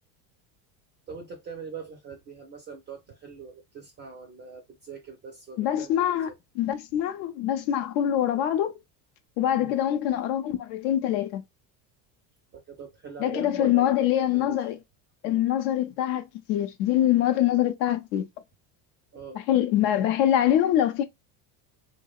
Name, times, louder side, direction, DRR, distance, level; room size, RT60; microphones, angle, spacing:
voice 1, 1.1-6.1 9.6-9.8 12.5-13.9 14.3-14.8 19.1-19.4, right 5 dB, 25° right, 0.3 m, -42 dB
voice 2, 5.6-6.3 6.6-8.7 9.4-11.4 13.2-14.8 15.2-16.2 16.5-18.2 19.3-21.0, left 11 dB, 75° left, 0.5 m, -24 dB
2.8 x 2.0 x 2.3 m
supercardioid pair, 110°, 50 cm